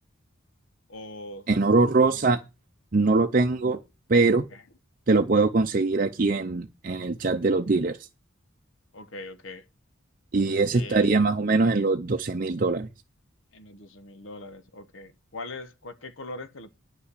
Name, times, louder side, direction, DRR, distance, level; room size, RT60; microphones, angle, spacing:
voice 1, 0.9-1.4 4.5-4.6 8.9-9.6 10.7-11.1 13.5-16.7, left 2 dB, 75° left, 1.1 m, -41 dB
voice 2, 1.5-2.4 2.9-3.8 4.1-4.5 5.1-8.1 10.3-12.9, right 3 dB, 40° right, 0.6 m, -22 dB
9.8 x 5.6 x 8.2 m
head